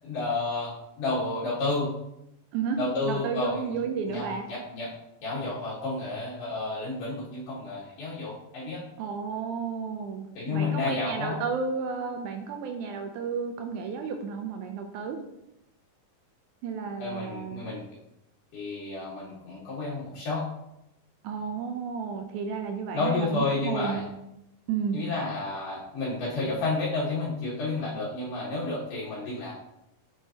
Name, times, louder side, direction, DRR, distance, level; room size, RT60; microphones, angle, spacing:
voice 1, 0.0-1.9 2.8-3.7 4.1-4.9 5.2-8.8 10.3-11.4 17.0-17.8 18.5-20.4 22.9-24.0 24.9-29.5, left 3 dB, 50° left, -9 dB, 2.2 m, -31 dB
voice 2, 3.1-4.5 9.0-15.2 16.6-17.6 21.2-24.1 24.7-25.0, right 6 dB, 80° right, 5 dB, 1.9 m, -32 dB
6.3 x 6.3 x 2.9 m, 0.85 s
omnidirectional pair, 3.8 m